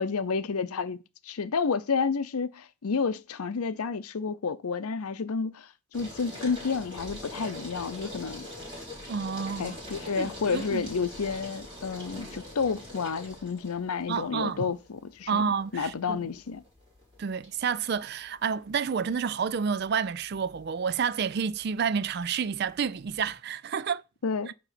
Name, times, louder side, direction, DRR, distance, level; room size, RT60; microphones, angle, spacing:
voice 1, 0.0-5.7 5.9-8.5 9.6-15.4 15.7-16.6 24.2-24.5, left 5 dB, 90° left, 0.6 m, -30 dB
sound 1, 5.9-23.4, left 1 dB, 25° right, 3.5 m, -44 dB
voice 2, 9.1-9.8 10.2-10.8 14.1-14.8 15.3-16.2 17.2-24.0, right 6 dB, 45° right, 0.3 m, -29 dB
9.1 x 3.1 x 5.7 m
head